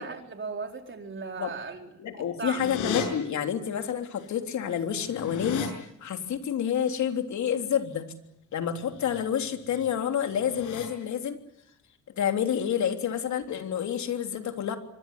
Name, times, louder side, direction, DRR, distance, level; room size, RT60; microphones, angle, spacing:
voice 1, 0.0-2.6, right 4 dB, 40° right, 4 dB, 4.5 m, -37 dB
voice 2, 2.0-5.6 6.0-8.1 8.5-11.4 12.2-14.8, left 8 dB, 70° left, 5 dB, 3.4 m, -29 dB
sound 1, 2.6-3.1 4.2-4.3 4.6-5.7 8.9-9.2 9.6-9.9 10.3-10.9, left 6 dB, 85° left, 7.1 m, -35 dB
25.0 x 19.5 x 9.8 m, 0.78 s
cardioid pair, 90°, 30 cm